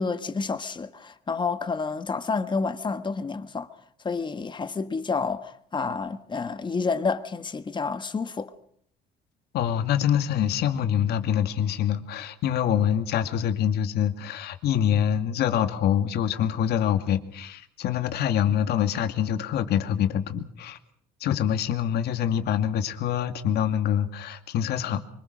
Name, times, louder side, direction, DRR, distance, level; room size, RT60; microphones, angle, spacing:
voice 1, 0.0-3.7 4.0-8.5, left 4 dB, 25° left, 1.6 m, -29 dB
voice 2, 9.5-20.8 21.2-25.0, left 9 dB, 75° left, 2.4 m, -25 dB
25.0 x 24.0 x 6.3 m
cardioid pair, 110°, 17 cm